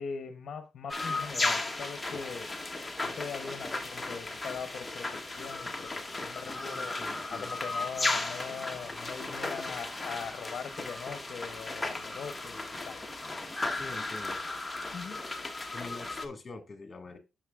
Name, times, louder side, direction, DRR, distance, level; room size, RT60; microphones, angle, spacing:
voice 1, 0.0-2.5 3.0-13.0 14.9-15.2, left 6 dB, 55° left, 0.8 m, -41 dB
sound 1, 0.9-16.3, left 2 dB, 10° left, 0.9 m, -35 dB
sound 2, 1.5-4.0 5.6-9.1 10.9-14.5 16.1-16.2, right 3 dB, 70° right, 2.4 m, -61 dB
sound 3, 4.4-5.4 7.0-8.0 9.6-10.3 11.9-12.5, equal, 10° right, 3.2 m, -57 dB
voice 2, 6.4-7.5 13.7-14.4 15.7-17.2, left 3 dB, 30° left, 1.8 m, -45 dB
9.4 x 6.3 x 2.4 m
cardioid pair, 105°, 0 cm